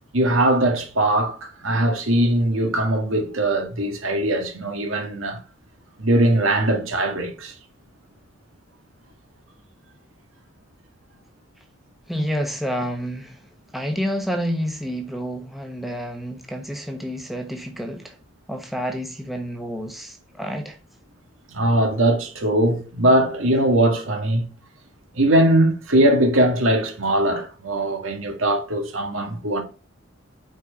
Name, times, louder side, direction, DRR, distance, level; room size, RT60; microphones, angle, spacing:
voice 1, 0.1-5.4 6.0-7.5 21.5-24.5 25.1-29.6, right 1 dB, 85° right, 1.9 m, -20 dB
voice 2, 12.1-13.5 13.7-18.2 18.5-20.8, equal, ahead, 1.0 m, -29 dB
6.1 x 4.6 x 5.5 m
head